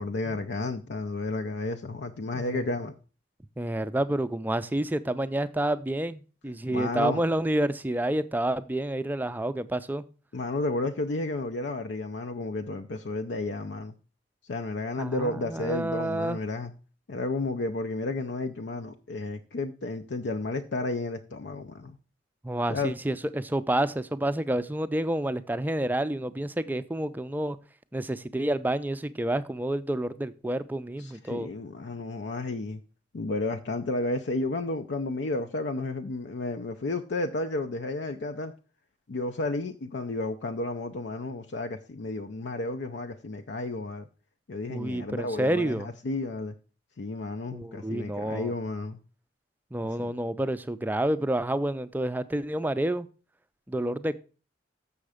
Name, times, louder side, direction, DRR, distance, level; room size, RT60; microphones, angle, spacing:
voice 1, 0.0-2.9 6.7-7.2 10.3-13.9 14.5-16.7 17.1-22.0 22.7-22.9 31.0-32.8 33.1-38.5 39.1-44.1 44.5-46.5 47.0-49.0 49.8-50.1, left 2 dB, 75° left, 0.5 m, -32 dB
voice 2, 2.3-2.7 3.6-10.0 15.0-16.4 22.4-27.6 27.9-31.5 44.7-45.9 47.5-48.5 49.7-53.1 53.7-54.2, right 1 dB, 10° right, 0.4 m, -29 dB
7.0 x 6.5 x 4.9 m
head